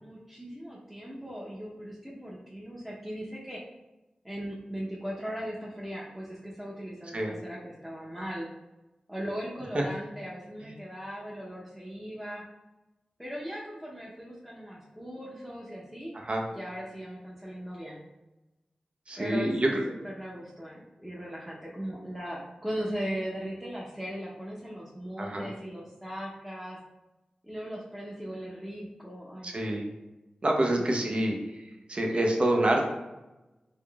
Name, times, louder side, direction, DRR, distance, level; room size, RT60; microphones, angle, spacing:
voice 1, 0.0-3.6 4.2-8.5 9.1-12.4 13.2-16.1 16.5-18.0 19.2-26.8 27.4-29.6 32.1-32.3, equal, 5° right, -6 dB, 0.7 m, -38 dB
voice 2, 19.1-19.8 25.2-25.5 29.4-29.9 30.4-31.4 31.9-32.8, right 1 dB, 45° right, 1 dB, 0.7 m, -26 dB
3.7 x 3.5 x 2.3 m, 1.0 s
cardioid pair, 45°, 3 cm